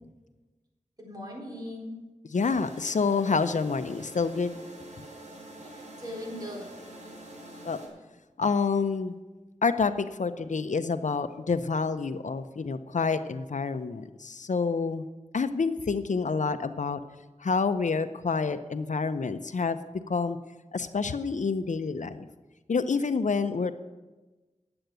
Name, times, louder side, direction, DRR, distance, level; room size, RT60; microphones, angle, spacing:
voice 1, 1.0-1.9 5.6-6.7, left 1 dB, 30° right, -2 dB, 4.0 m, -39 dB
voice 2, 2.3-4.5 7.6-7.8 8.4-9.1 9.6-15.0 15.3-17.0 17.4-19.8 20.1-20.4 20.7-22.3 22.7-23.7, left 4 dB, 75° left, 11 dB, 0.6 m, -28 dB
sound 1, 2.3-7.9, right 1 dB, 65° right, 4.5 m, -46 dB
10.5 x 7.8 x 8.0 m, 1.2 s
wide cardioid pair, 50°, 13 cm